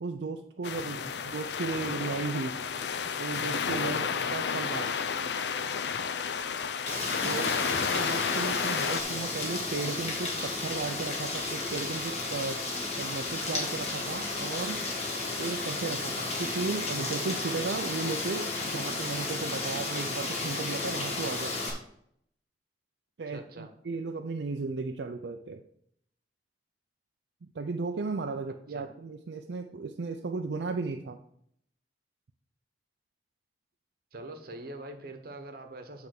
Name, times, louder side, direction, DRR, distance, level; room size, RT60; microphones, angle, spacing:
voice 1, 0.0-2.6 3.2-4.9 7.2-12.7 13.0-14.8 15.4-21.6 23.2-25.6 27.4-31.2, right 4 dB, 75° right, 5 dB, 0.5 m, -35 dB
sound 1, 0.6-9.0, left 6 dB, 75° left, 0.5 m, -31 dB
Rain, 6.9-21.7, left 3 dB, 35° left, 1.8 m, -33 dB
voice 2, 7.4-7.8 23.3-23.7 28.7-28.8 34.1-36.1, right 2 dB, 55° right, 6 dB, 1.0 m, -44 dB
8.8 x 3.5 x 6.5 m, 0.70 s
head